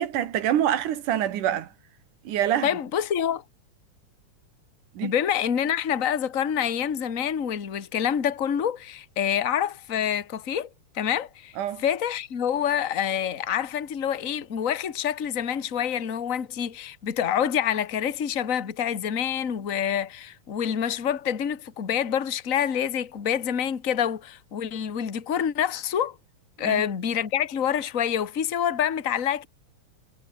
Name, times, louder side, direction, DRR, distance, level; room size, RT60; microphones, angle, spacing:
voice 1, 0.0-1.7 2.2-2.7 4.9-5.1 11.6-11.8 26.6-26.8, right 11 dB, 75° right, 3.2 m, -26 dB
voice 2, 2.6-3.4 5.0-10.7 10.9-11.5 11.8-26.1 26.6-29.5, left 9 dB, 35° left, 1.6 m, -27 dB
omnidirectional pair, 3.6 m